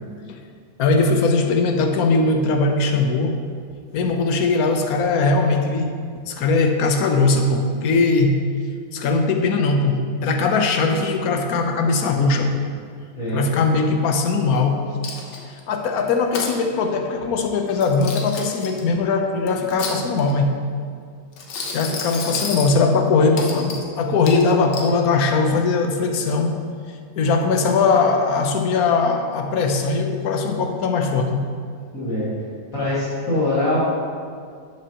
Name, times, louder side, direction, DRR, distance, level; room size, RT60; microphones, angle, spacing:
voice 1, 0.8-3.4 3.9-5.9 6.3-8.4 8.9-12.6 13.3-14.9 15.7-20.6 21.7-26.6 27.2-31.4, left 3 dB, 60° left, 4 dB, 1.1 m, -20 dB
voice 2, 13.2-13.5 31.9-32.3 32.7-33.8, left 1 dB, 45° left, -11 dB, 2.3 m, -23 dB
Coin (dropping), 15.0-15.6 16.1-16.5 17.7-18.8 19.5-20.4 21.3-22.8 23.4-23.9 24.3-24.9, left 4 dB, 85° left, 1.8 m, -31 dB
11.5 x 7.7 x 3.0 m, 2.2 s
omnidirectional pair, 2.1 m